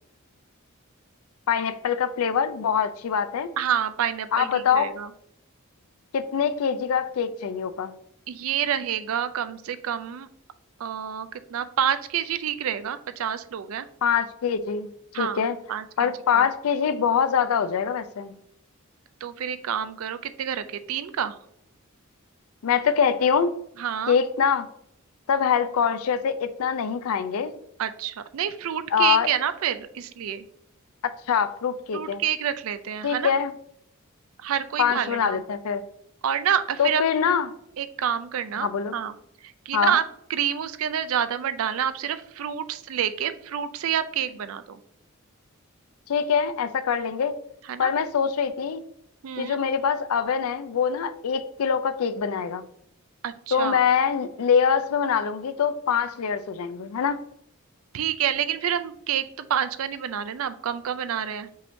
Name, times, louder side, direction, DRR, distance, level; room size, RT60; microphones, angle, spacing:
voice 1, 1.5-3.5 4.3-4.9 6.1-7.9 14.0-14.9 15.2-15.6 16.0-18.3 22.6-23.5 24.1-24.7 25.3-27.5 28.9-29.3 31.0-32.2 33.0-33.5 34.8-35.8 36.8-37.5 38.6-38.9 39.7-40.0 46.1-47.4 47.8-48.8 49.4-52.7 53.5-57.2, left 7 dB, 75° left, 0.4 m, -24 dB
voice 2, 3.6-5.1 8.3-10.3 10.8-13.9 15.1-15.4 15.7-16.1 16.3-16.5 19.2-21.4 23.8-24.1 27.8-30.4 31.9-33.4 34.4-35.4 36.2-37.0 37.8-39.1 39.4-40.0 40.3-44.8 47.6-47.9 49.2-49.6 53.2-53.8 57.9-61.5, right 9 dB, 65° right, 0.4 m, -28 dB
5.3 x 3.5 x 2.6 m
head